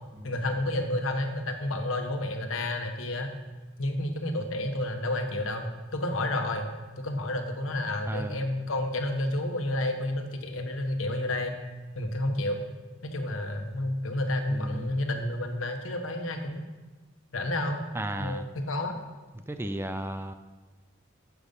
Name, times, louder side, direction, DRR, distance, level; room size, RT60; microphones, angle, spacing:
voice 1, 0.2-3.3 3.8-6.7 7.0-11.5 12.0-12.6 13.0-16.7 17.3-17.8 18.2-19.0, left 1 dB, 75° left, 4 dB, 1.3 m, -30 dB
voice 2, 8.1-8.4 14.5-15.0 17.9-18.5 19.5-20.3, right 1 dB, 10° right, 9 dB, 0.4 m, -34 dB
10.5 x 7.1 x 5.4 m, 1.3 s
head